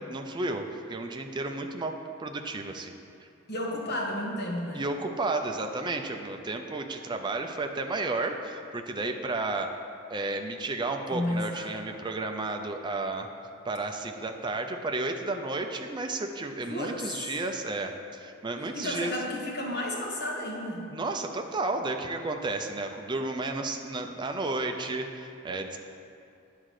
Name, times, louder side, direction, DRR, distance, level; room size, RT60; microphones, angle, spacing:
voice 1, 0.0-2.9 4.7-9.7 10.1-13.3 13.6-19.1 20.9-25.8, right 2 dB, 20° right, 4 dB, 0.5 m, -32 dB
voice 2, 3.5-4.8 11.1-11.8 16.6-17.4 18.6-20.8, left 1 dB, 50° left, -2 dB, 1.3 m, -32 dB
9.3 x 3.8 x 6.4 m, 2.6 s
head